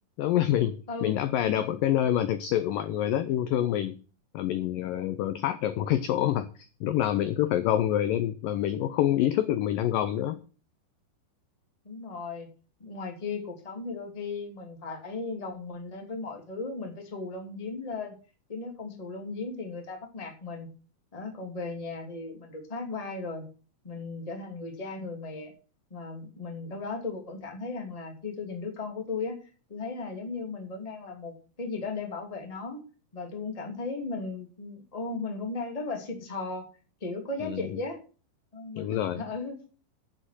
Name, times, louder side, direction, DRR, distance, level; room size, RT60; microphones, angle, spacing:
voice 1, 0.2-4.0 4.3-6.5 6.8-10.4 37.4-37.7 38.8-39.2, left 12 dB, 80° left, 12 dB, 2.0 m, -27 dB
voice 2, 11.8-12.5 12.8-18.1 18.5-20.7 21.1-23.4 23.8-25.5 25.9-29.4 29.7-32.8 33.1-36.6 37.0-38.0 38.5-39.6, left 3 dB, 15° left, 3 dB, 1.5 m, -36 dB
9.9 x 6.8 x 7.5 m, 0.36 s
omnidirectional pair, 4.9 m